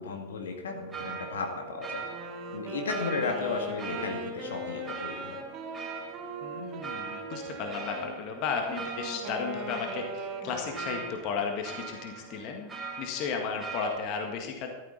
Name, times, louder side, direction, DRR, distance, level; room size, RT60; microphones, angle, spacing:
voice 1, 0.0-2.0 2.5-5.4, left 4 dB, 65° left, 3 dB, 2.0 m, -34 dB
sound 1, 0.7-14.0, right 5 dB, 15° right, 3.1 m, -41 dB
Wind instrument woodwind instrument, 2.0-8.1 8.6-11.3, right 1 dB, 35° right, 4.0 m, -40 dB
voice 2, 6.4-12.7 13.0-14.7, left 5 dB, 40° left, 3 dB, 1.7 m, -34 dB
14.0 x 12.0 x 4.0 m, 1.3 s
figure-of-eight pair, 90°, 0 cm